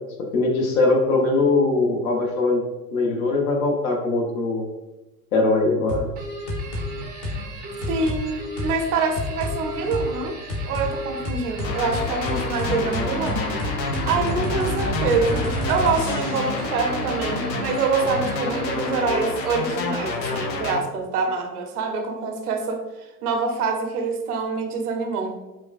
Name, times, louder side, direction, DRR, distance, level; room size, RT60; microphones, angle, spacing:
voice 1, 0.3-2.6 2.9-4.6 5.3-6.1, left 3 dB, 55° left, 1 dB, 1.0 m, -21 dB
sound 1, 5.9-6.1 6.5-6.9 7.2-7.4 7.8-8.2 8.6-8.7 9.1-9.5 9.9-10.0 10.5-10.9 11.2-16.5, left 1 dB, 35° left, 1.0 m, -29 dB
sound 2, 6.2-19.3, right 3 dB, 20° right, 0.6 m, -35 dB
voice 2, 7.9-10.4 10.7-13.5 14.1-25.4, right 4 dB, 65° right, 4 dB, 0.7 m, -25 dB
sound 3, 11.6-20.8, left 3 dB, 80° left, 0.6 m, -29 dB
5.2 x 2.2 x 2.4 m, 1.0 s
figure-of-eight pair, 90°, 50 cm